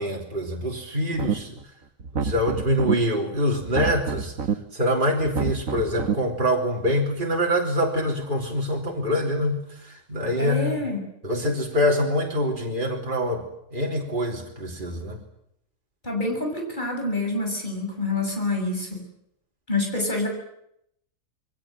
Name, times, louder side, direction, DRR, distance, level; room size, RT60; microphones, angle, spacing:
voice 1, 0.0-1.6 2.2-10.7 11.2-13.4 13.7-15.2, equal, 40° right, -1 dB, 4.0 m, -25 dB
sound 1, 1.1-1.6 2.0-2.9 3.6-4.5 5.2-6.1, right 6 dB, 80° right, 1.9 m, -27 dB
voice 2, 10.4-11.0 16.0-19.0 19.7-20.3, left 2 dB, 35° left, 2 dB, 7.4 m, -27 dB
28.5 x 23.0 x 7.8 m, 0.77 s
omnidirectional pair, 1.4 m